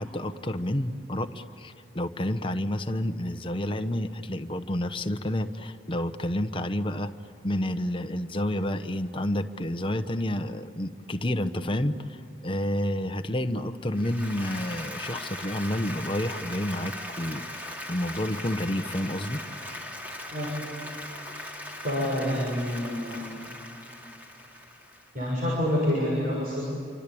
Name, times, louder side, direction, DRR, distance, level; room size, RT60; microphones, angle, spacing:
voice 1, 0.0-7.1 7.4-19.4, left 1 dB, 30° left, 8 dB, 1.0 m, -30 dB
Applause, 13.9-25.3, left 1 dB, 10° right, 2.5 m, -39 dB
voice 2, 21.8-23.2 25.1-26.6, left 1 dB, 50° right, -3 dB, 6.5 m, -27 dB
27.5 x 25.0 x 8.6 m, 2.7 s
head